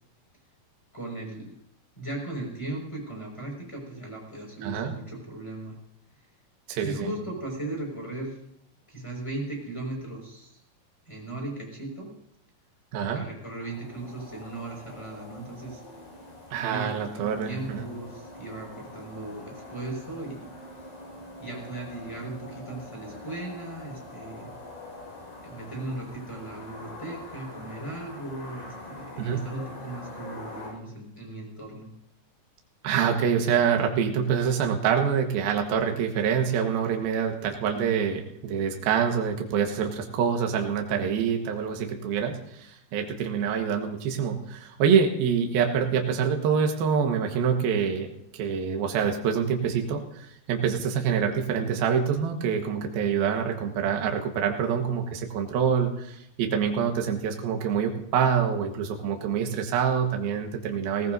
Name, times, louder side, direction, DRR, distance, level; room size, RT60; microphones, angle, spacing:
voice 1, 0.9-1.5 2.0-5.8 6.8-8.4 8.9-10.6 11.1-12.1 13.1-15.8 16.7-20.5 21.4-24.5 25.4-31.9, right 2 dB, 5° left, -2 dB, 5.0 m, -37 dB
voice 2, 4.6-4.9 6.7-7.1 12.9-13.2 16.5-17.8 29.2-29.4 32.8-48.1 48.3-61.1, right 7 dB, 70° right, 3 dB, 3.0 m, -26 dB
sound 1, 13.4-30.7, left 2 dB, 80° left, 7.5 m, -44 dB
19.5 x 18.5 x 2.7 m, 0.76 s
omnidirectional pair, 4.9 m